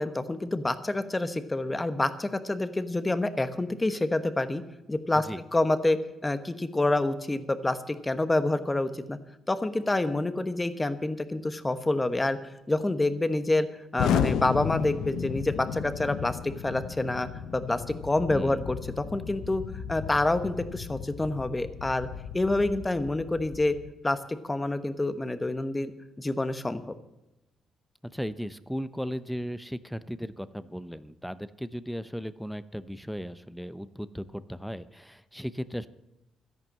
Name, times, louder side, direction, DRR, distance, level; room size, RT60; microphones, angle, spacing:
voice 1, 0.0-4.6 4.9-5.3 5.5-9.2 9.5-12.4 12.7-13.7 13.9-18.8 19.1-19.6 19.9-22.1 22.3-23.8 24.0-24.2 24.4-25.9 26.2-26.9, left 2 dB, 15° left, 11 dB, 1.2 m, -27 dB
Explosion, 14.0-23.9, left 8 dB, 85° left, 0.8 m, -34 dB
voice 2, 18.3-18.6 28.0-35.9, equal, ahead, 15 dB, 0.7 m, -36 dB
13.0 x 11.0 x 7.5 m, 0.93 s
cardioid pair, 90°, 0 cm